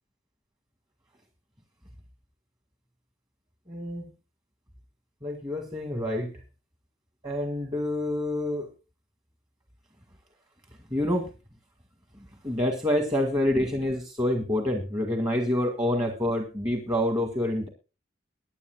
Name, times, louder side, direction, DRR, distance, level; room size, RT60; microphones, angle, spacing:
voice 1, 3.7-4.1 5.2-6.3 7.2-8.7 10.9-11.3 12.4-17.7, left 1 dB, 25° right, 4 dB, 1.8 m, -27 dB
22.5 x 9.9 x 2.3 m, 0.31 s
head